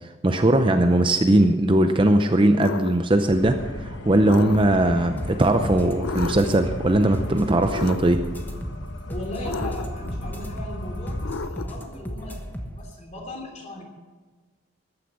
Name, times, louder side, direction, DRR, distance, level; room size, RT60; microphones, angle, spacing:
voice 1, 0.2-8.2, right 1 dB, 25° right, 7 dB, 0.6 m, -19 dB
sound 1, 2.6-3.0 4.3-4.9 6.0-6.6 7.7-8.3 9.4-10.1 11.2-11.9, left 4 dB, 75° left, 0.5 m, -33 dB
sound 2, 3.3-11.4, left 1 dB, 55° left, 1.2 m, -34 dB
sound 3, 5.2-12.9, equal, 10° left, 1.1 m, -36 dB
voice 2, 9.1-13.9, left 1 dB, 35° left, 1 dB, 3.1 m, -37 dB
14.0 x 9.8 x 7.2 m, 1.4 s
head